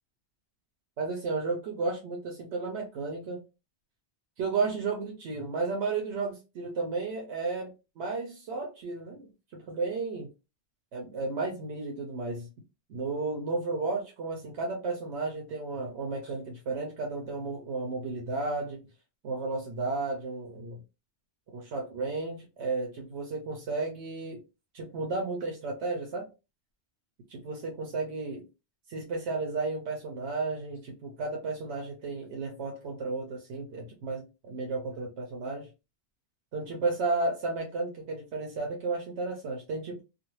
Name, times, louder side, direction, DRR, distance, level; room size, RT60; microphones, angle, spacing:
voice 1, 1.0-3.4 4.4-10.3 10.9-12.5 12.9-18.8 19.2-20.8 21.5-24.4 24.7-26.3 27.3-28.4 28.9-35.7 36.5-40.0, right 3 dB, 85° right, 1.0 m, -33 dB
2.6 x 2.2 x 3.0 m
omnidirectional pair, 1.1 m